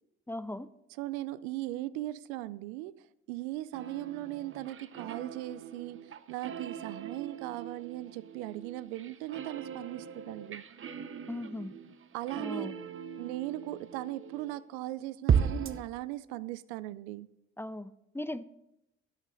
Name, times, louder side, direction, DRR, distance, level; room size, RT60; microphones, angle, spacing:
voice 1, 0.3-0.7 11.3-11.8 12.4-12.7 17.6-18.4, left 1 dB, 5° left, 0.6 m, -38 dB
voice 2, 1.0-10.6 12.1-12.7 13.2-17.3, right 16 dB, 75° right, 0.5 m, -38 dB
sound 1, 3.7-14.6 15.3-15.8, right 7 dB, 40° right, 0.9 m, -36 dB
13.0 x 9.0 x 4.0 m
hypercardioid pair, 50°, 33 cm